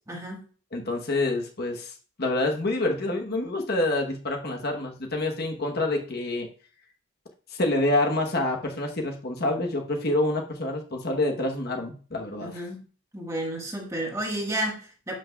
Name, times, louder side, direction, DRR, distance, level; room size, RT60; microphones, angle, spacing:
voice 1, 0.1-0.4 12.4-12.8 13.1-15.1, right 1 dB, 15° right, 0 dB, 1.5 m, -31 dB
voice 2, 0.7-1.9 2.2-6.5 7.5-12.6, left 2 dB, 45° left, 2 dB, 1.0 m, -27 dB
11.5 x 5.9 x 2.3 m, 0.40 s
head